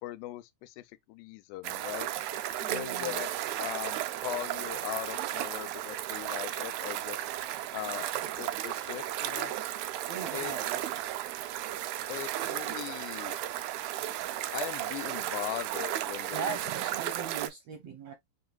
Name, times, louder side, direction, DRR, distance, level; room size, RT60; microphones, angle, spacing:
voice 1, 0.0-2.1 2.7-7.3 7.7-8.1 8.4-9.6 10.3-10.5 12.1-13.4 14.5-16.6, left 17 dB, 90° left, 2.3 m, -40 dB
sound 1, 1.6-17.5, right 13 dB, 85° right, 1.6 m, -34 dB
voice 2, 2.6-3.2 10.1-10.8 16.3-18.1, right 6 dB, 70° right, 1.6 m, -39 dB
5.5 x 3.1 x 2.3 m
omnidirectional pair, 4.0 m